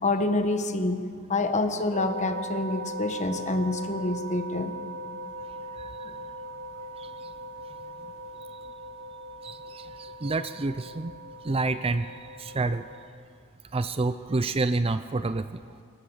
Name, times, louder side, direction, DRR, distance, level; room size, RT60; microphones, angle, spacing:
voice 1, 0.0-1.0 1.3-4.7, left 2 dB, 35° left, 7 dB, 1.4 m, -27 dB
sound 1, 1.9-13.1, right 1 dB, 60° right, 1.7 m, -39 dB
voice 2, 9.4-11.1 11.4-12.9 13.7-15.5, right 3 dB, 25° right, 12 dB, 0.5 m, -28 dB
23.0 x 19.0 x 7.2 m, 2.3 s
head